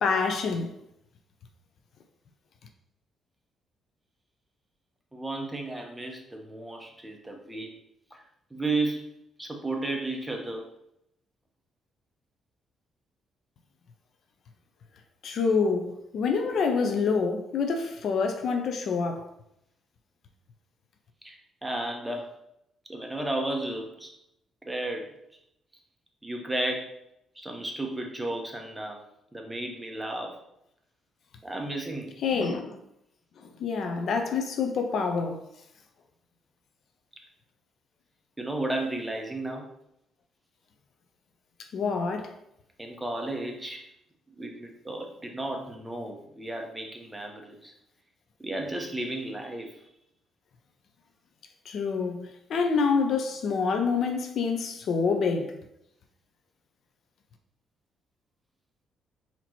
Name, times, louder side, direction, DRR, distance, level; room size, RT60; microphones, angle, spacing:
voice 1, 0.0-0.7 15.2-15.8 16.1-19.3 32.2-32.8 33.6-35.4 41.7-42.3 51.7-55.5, left 5 dB, 65° left, 0.6 m, -27 dB
voice 2, 5.1-7.7 8.1-8.2 8.5-9.1 9.4-10.7 15.6-15.7 21.2-22.3 22.9-24.1 24.6-25.1 26.2-26.9 27.4-29.0 29.3-30.4 31.4-32.1 32.4-32.6 33.8-34.0 38.4-39.7 42.8-43.8 44.4-47.7 48.4-49.8, right 2 dB, 10° right, 0.9 m, -33 dB
4.3 x 2.9 x 4.2 m
cardioid pair, 90°, 0 cm